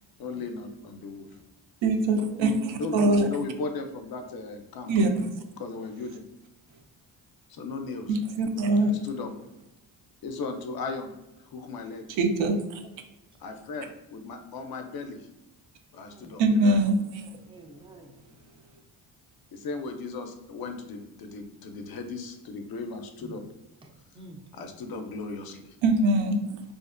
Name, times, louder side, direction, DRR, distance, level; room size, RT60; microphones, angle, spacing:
voice 1, 0.2-1.3 2.8-5.1 5.6-6.2 7.5-8.2 8.8-9.3 10.2-11.1 11.4-12.0 13.4-15.3 15.9-16.8 19.5-23.4 24.5-25.8, left 3 dB, 55° left, 0.5 m, -36 dB
voice 2, 1.8-3.3 4.9-5.3 8.1-8.9 12.2-12.8 16.4-17.0 25.8-26.6, right 2 dB, 70° right, 0.5 m, -23 dB
voice 3, 16.0-16.3 17.5-18.1 23.2-23.4 23.8-24.4, right 2 dB, 10° right, 0.4 m, -49 dB
2.5 x 2.0 x 2.4 m
cardioid pair, 70°, 46 cm